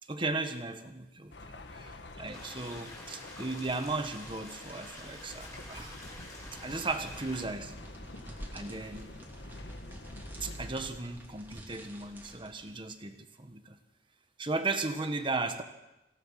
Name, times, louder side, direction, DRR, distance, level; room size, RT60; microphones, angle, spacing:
voice 1, 0.1-6.0 6.5-7.7 8.5-9.1 10.4-13.8 14.4-15.6, right 3 dB, 30° right, 8 dB, 1.6 m, -36 dB
sound 1, 1.3-10.9, left 1 dB, 80° left, 1.7 m, -48 dB
sound 2, 2.2-12.8, equal, 10° right, 3.0 m, -50 dB
sound 3, 2.3-7.4, left 2 dB, 20° left, 5.5 m, -48 dB
26.0 x 17.0 x 5.9 m, 0.97 s
head